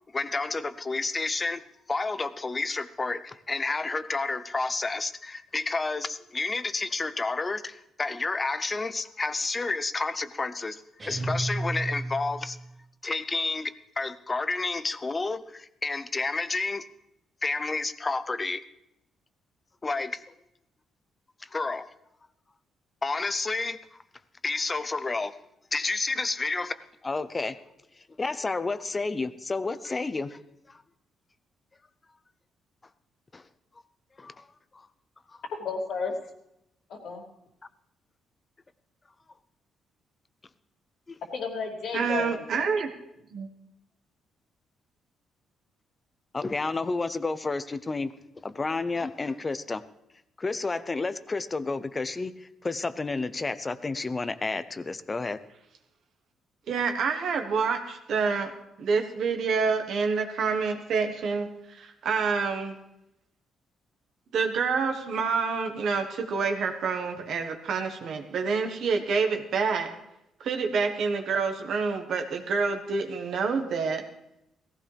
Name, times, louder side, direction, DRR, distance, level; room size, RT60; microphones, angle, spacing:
voice 1, 0.1-1.6 1.9-12.6 13.0-16.9 17.4-18.6 19.8-20.3 21.4-21.9 23.0-24.0 24.4-25.4 25.7-27.6 27.9-30.4 30.7-30.8 33.3-33.5 34.2-34.9 35.3-35.4 41.1-41.2 46.3-48.1 48.4-49.8 50.4-55.4, left 3 dB, 20° left, 14 dB, 0.6 m, -30 dB
sound 1, 11.0-12.7, right 2 dB, 20° right, 3.1 m, -32 dB
voice 2, 35.6-36.1 37.0-37.2 41.3-42.7, left 5 dB, 70° left, -6 dB, 2.7 m, -32 dB
voice 3, 41.9-42.9 43.3-43.5 56.7-58.5 58.8-62.7 64.3-69.9 70.4-74.0, right 5 dB, 60° right, 5 dB, 1.3 m, -27 dB
17.5 x 15.5 x 3.4 m, 0.83 s
cardioid pair, 155°, 0 cm